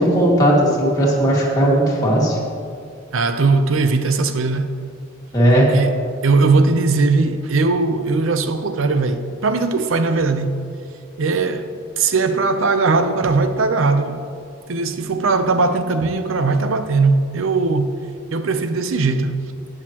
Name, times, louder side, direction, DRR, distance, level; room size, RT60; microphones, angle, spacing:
voice 1, 0.0-2.4 5.3-5.7, equal, 20° left, 2.0 m, -16 dB
voice 2, 3.1-4.8 5.5-10.6 11.2-14.2 14.7-18.0 18.3-19.4, right 3 dB, 75° right, 0.6 m, -19 dB
18.5 x 6.5 x 2.9 m
head